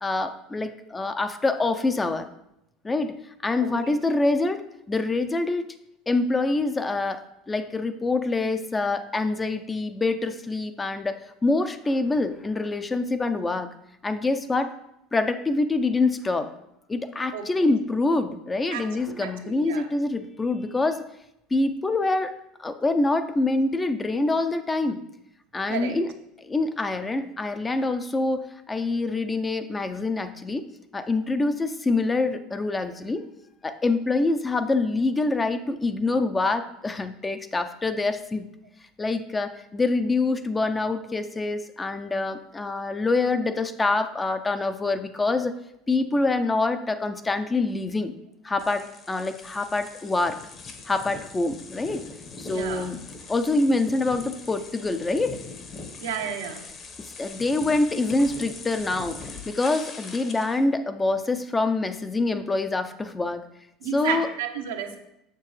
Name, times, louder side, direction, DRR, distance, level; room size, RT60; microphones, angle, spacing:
voice 1, 0.0-2.3 2.8-3.1 3.4-5.7 6.1-13.7 14.0-14.7 15.1-16.5 16.9-21.0 21.5-22.3 22.6-25.0 25.5-26.1 26.4-30.7 30.9-33.3 33.6-38.4 39.0-45.5 45.9-48.1 48.4-50.4 50.9-52.0 52.4-53.0 53.3-55.4 57.0-59.2 59.5-63.5 63.9-64.3, left 3 dB, 20° left, 9 dB, 0.5 m, -25 dB
voice 2, 3.6-3.9 17.3-17.7 18.7-19.9 25.7-26.0 52.5-52.9 56.0-56.6 63.8-65.0, right 8 dB, 90° right, 4 dB, 0.9 m, -32 dB
sound 1, 48.6-60.6, left 4 dB, 40° left, 1.1 m, -41 dB
6.7 x 6.7 x 3.2 m, 0.83 s
supercardioid pair, 100°, 0 cm